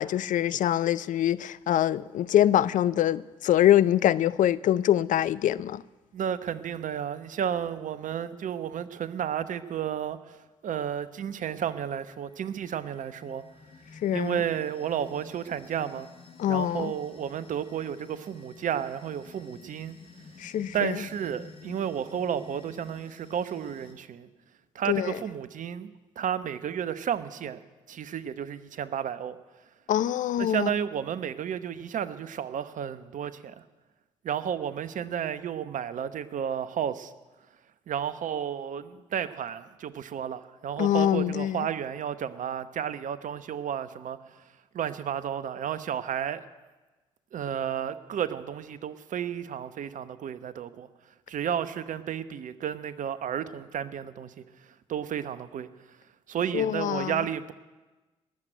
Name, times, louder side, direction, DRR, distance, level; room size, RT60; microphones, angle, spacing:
voice 1, 0.0-5.8 14.0-14.4 16.4-16.9 20.4-21.0 24.9-25.2 29.9-30.7 40.8-41.7 56.5-57.2, left 11 dB, 55° left, 0.6 m, -24 dB
voice 2, 6.1-10.4 10.6-13.4 14.1-16.1 16.5-20.0 20.7-24.3 24.7-25.9 26.2-27.6 27.9-29.4 30.4-33.6 34.2-37.1 37.9-44.4 44.7-46.4 47.3-50.9 51.3-54.4 54.9-55.7 56.3-57.5, right 9 dB, 55° right, 1.0 m, -32 dB
sound 1, 12.0-23.9, left 4 dB, 40° left, 4.3 m, -51 dB
19.5 x 7.8 x 9.3 m
hypercardioid pair, 45°, 16 cm